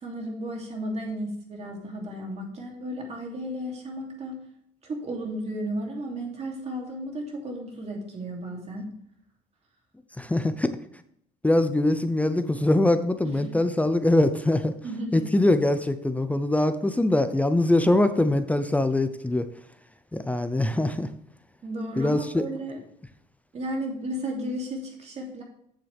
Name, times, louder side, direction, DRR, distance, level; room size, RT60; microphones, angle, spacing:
voice 1, 0.0-4.4 4.8-8.9 13.2-13.6 14.8-15.3 21.6-22.8 23.5-25.4, right 1 dB, 40° right, 0 dB, 2.9 m, -34 dB
voice 2, 10.2-10.7 11.4-14.7 15.1-19.5 20.1-21.1 22.0-22.5, left 1 dB, 10° left, 10 dB, 0.6 m, -23 dB
8.8 x 7.5 x 3.4 m, 0.71 s
cardioid pair, 110°, 17 cm